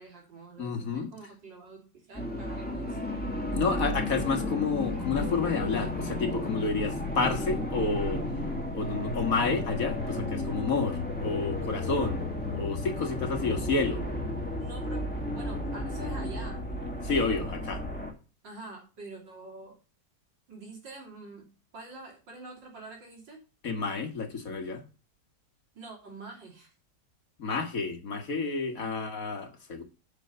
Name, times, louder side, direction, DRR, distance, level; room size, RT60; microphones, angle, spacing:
voice 1, 0.0-3.3 14.6-16.6 18.4-19.8 20.5-21.5 21.7-23.4 25.7-26.7 28.8-28.9, right 3 dB, 90° right, 4.0 m, -46 dB
voice 2, 0.6-1.1 3.5-8.3 8.7-12.3 12.5-14.0 17.0-17.8 23.6-24.8 27.4-29.8, left 4 dB, 50° left, 1.9 m, -30 dB
sound 1, 2.1-18.1, left 1 dB, 5° left, 2.0 m, -33 dB
8.3 x 6.3 x 6.7 m
omnidirectional pair, 1.9 m